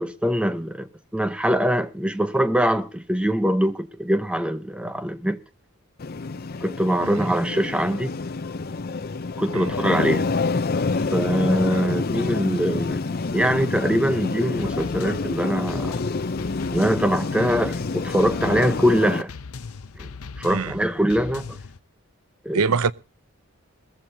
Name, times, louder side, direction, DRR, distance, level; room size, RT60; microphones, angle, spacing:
voice 1, 0.0-5.4 6.6-8.1 9.4-10.3 11.1-16.0 16.7-19.3 20.0-20.1 20.4-21.4 22.4-22.7, equal, 5° right, 0.7 m, -23 dB
sound 1, 6.0-19.2, left 3 dB, 45° left, 0.6 m, -27 dB
sound 2, 14.6-21.8, left 4 dB, 80° left, 0.8 m, -39 dB
voice 2, 20.4-20.8 22.5-22.9, right 5 dB, 80° right, 0.7 m, -24 dB
20.0 x 15.0 x 2.8 m
head